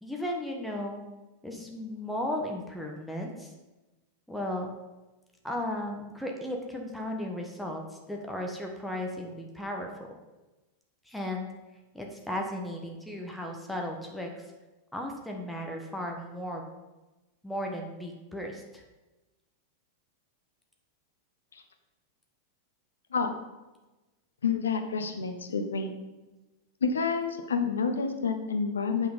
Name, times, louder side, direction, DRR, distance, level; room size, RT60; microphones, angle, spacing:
voice 1, 0.0-1.0 1.4-3.5 4.3-4.7 5.4-7.8 8.1-10.1 11.0-11.5 11.9-14.4 14.9-16.7 17.4-18.8, left 1 dB, ahead, 1 dB, 1.3 m, -35 dB
voice 2, 24.4-25.9 26.8-29.1, left 5 dB, 70° left, 6 dB, 1.0 m, -29 dB
8.5 x 6.1 x 5.3 m, 1.1 s
figure-of-eight pair, 90°, 0 cm